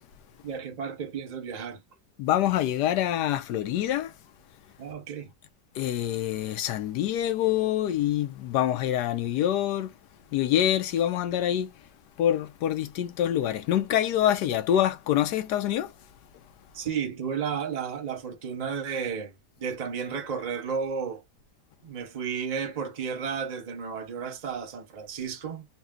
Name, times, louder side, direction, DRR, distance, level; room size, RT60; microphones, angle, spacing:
voice 1, 0.4-1.8 4.8-5.3 16.7-19.3 19.6-21.2 21.8-25.7, right 6 dB, 35° right, 0.7 m, -33 dB
voice 2, 2.2-4.1 5.7-9.9 10.3-11.7 12.2-15.9, left 11 dB, 75° left, 1.2 m, -26 dB
4.0 x 2.2 x 3.6 m
omnidirectional pair, 1.8 m